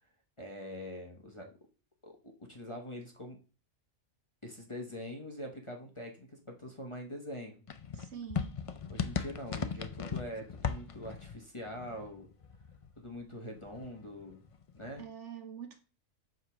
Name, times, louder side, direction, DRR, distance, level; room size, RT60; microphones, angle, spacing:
voice 1, 0.4-1.5 2.0-3.4 4.4-7.6 8.9-12.3 13.0-14.4 14.7-15.0, equal, 25° left, 1.3 m, -44 dB
sound 1, 7.7-13.2 13.5-15.0, left 6 dB, 40° left, 0.4 m, -38 dB
voice 2, 7.9-8.6 15.0-15.8, right 8 dB, 65° right, 1.6 m, -45 dB
7.4 x 3.7 x 6.2 m
omnidirectional pair, 1.3 m